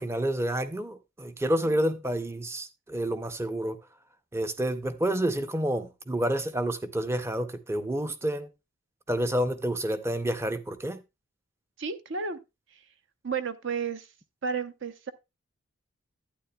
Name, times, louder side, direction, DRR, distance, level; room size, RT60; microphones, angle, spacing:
voice 1, 0.0-3.8 4.3-8.5 9.1-11.0, right 1 dB, 10° right, 0.6 m, -29 dB
voice 2, 11.8-12.4 13.2-14.1 14.4-15.1, right 5 dB, 55° right, 0.7 m, -32 dB
11.5 x 9.1 x 2.3 m
head